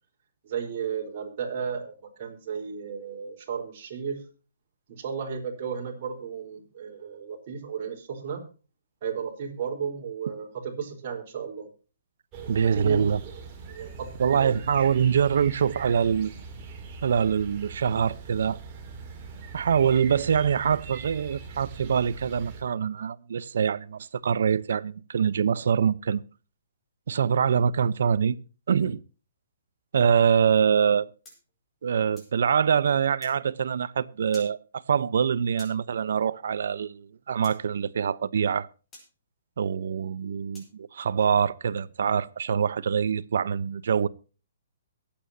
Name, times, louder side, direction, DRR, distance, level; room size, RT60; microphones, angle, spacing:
voice 1, 0.4-4.2 4.9-8.4 9.0-11.7 12.7-13.1 13.7-14.6, right 6 dB, 40° right, 4.4 m, -34 dB
sound 1, 12.3-22.6, right 5 dB, 20° right, 3.0 m, -42 dB
voice 2, 12.5-13.2 14.2-16.4 17.0-18.6 19.5-26.2 27.1-28.4 28.7-29.0 29.9-31.1 31.8-38.7 39.6-44.1, right 7 dB, 65° right, 0.9 m, -24 dB
sound 2, 31.2-32.4 33.2-33.4 34.3-34.5 35.6-35.8 37.4-37.6 38.9-39.1 40.5-40.7, left 1 dB, 15° left, 4.8 m, -49 dB
23.0 x 8.8 x 2.8 m
hypercardioid pair, 165°, 0 cm